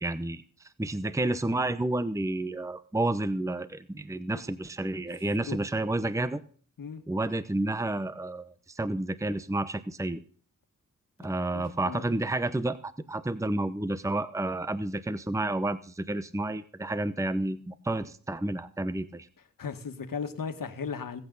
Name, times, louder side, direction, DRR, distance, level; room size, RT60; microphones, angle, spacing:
voice 1, 0.0-6.4 7.1-10.2 11.2-19.3, right 2 dB, 10° right, 13 dB, 0.8 m, -30 dB
voice 2, 11.5-12.1 19.6-21.2, left 6 dB, 75° left, 7 dB, 1.9 m, -36 dB
20.5 x 8.6 x 4.0 m, 0.43 s
cardioid pair, 70°, 33 cm